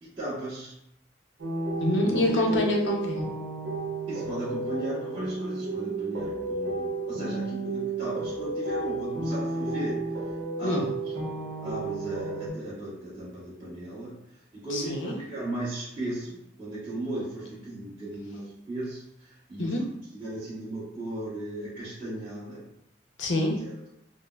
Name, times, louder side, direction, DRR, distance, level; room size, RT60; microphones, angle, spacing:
voice 1, 0.0-0.7 2.2-2.7 4.1-10.0 10.6-10.8 11.6-14.1 14.6-19.7 20.1-22.6 23.6-23.7, right 1 dB, 25° right, -14 dB, 1.2 m, -36 dB
sound 1, 1.4-12.5, right 3 dB, 80° right, 0.8 m, -32 dB
voice 2, 1.8-3.2 10.6-10.9 14.7-15.2 19.6-19.8 23.2-23.6, left 1 dB, 75° left, 0 dB, 0.7 m, -26 dB
5.1 x 2.0 x 2.3 m, 0.77 s
head